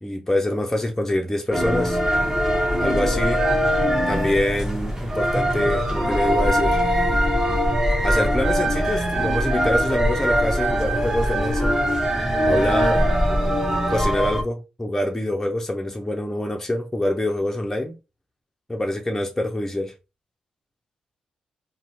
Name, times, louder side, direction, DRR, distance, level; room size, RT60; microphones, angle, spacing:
voice 1, 0.0-2.0 2.8-3.4 4.1-6.8 8.0-11.8 12.4-13.0 13.9-18.0 18.7-19.9, left 1 dB, 10° left, 0.5 m, -25 dB
sound 1, 1.5-14.4, equal, 15° right, 0.8 m, -21 dB
2.5 x 2.0 x 2.7 m
hypercardioid pair, 40°, 3 cm